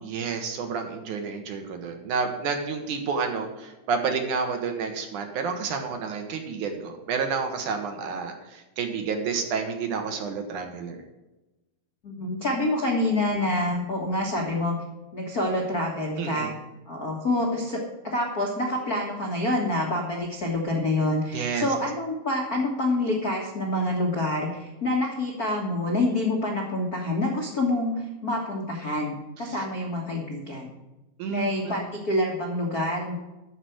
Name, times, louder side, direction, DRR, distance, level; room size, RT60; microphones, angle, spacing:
voice 1, 0.0-11.0 16.2-16.5 21.3-21.7 29.4-29.6 31.2-31.8, right 5 dB, 65° right, 5 dB, 2.4 m, -30 dB
voice 2, 12.0-14.7 15.1-16.5 16.9-30.7 31.3-33.1, left 1 dB, 55° left, -1 dB, 1.0 m, -27 dB
12.5 x 5.0 x 7.9 m, 1.0 s
omnidirectional pair, 4.2 m